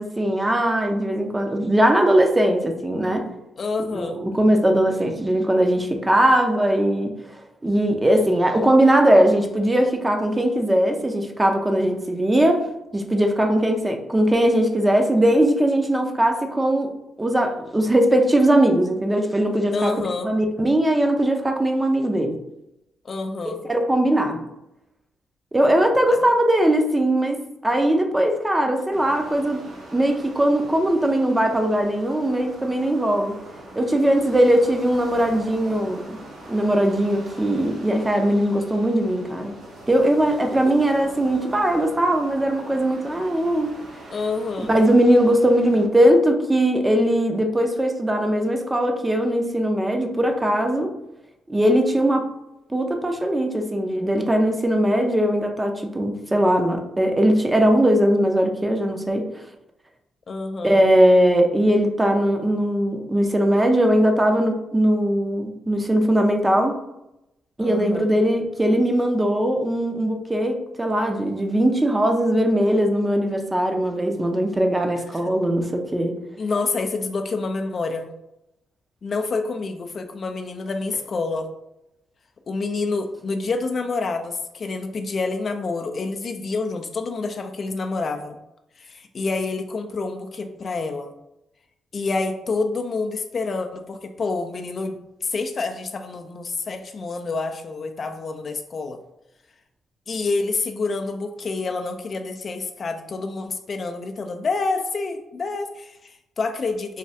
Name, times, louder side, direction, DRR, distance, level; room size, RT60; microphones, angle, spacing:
voice 1, 0.0-3.2 3.9-7.1 7.6-12.6 12.9-16.9 17.2-19.9 20.2-22.3 23.4-24.4 25.5-29.6 29.9-33.3 33.8-36.2 36.5-39.5 39.9-43.7 44.7-50.9 51.5-52.3 52.7-59.3 60.6-66.8 67.6-76.2, right 1 dB, 20° right, 4 dB, 0.5 m, -20 dB
voice 2, 3.6-4.3 19.7-20.4 23.0-23.6 26.1-26.2 40.7-40.8 44.1-44.8 60.3-60.8 67.6-68.2 75.1-75.2 76.4-78.1 79.0-81.5 82.5-88.4 88.8-91.1 91.9-99.0 100.1-107.0, left 3 dB, 50° left, 5 dB, 0.3 m, -28 dB
sound 1, 28.9-45.9, right 1 dB, 80° right, 0.9 m, -42 dB
3.1 x 2.2 x 2.7 m, 0.87 s
supercardioid pair, 60°, 0 cm